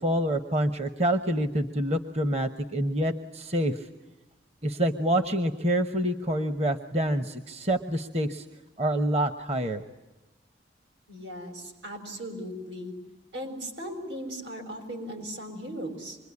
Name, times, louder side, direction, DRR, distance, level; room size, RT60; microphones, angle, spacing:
voice 1, 0.0-3.8 4.6-8.4 8.8-9.8, right 1 dB, 35° right, 8 dB, 1.0 m, -27 dB
voice 2, 11.1-12.9 13.3-16.2, equal, 85° right, 5 dB, 6.8 m, -37 dB
26.5 x 22.0 x 9.8 m, 1.0 s
head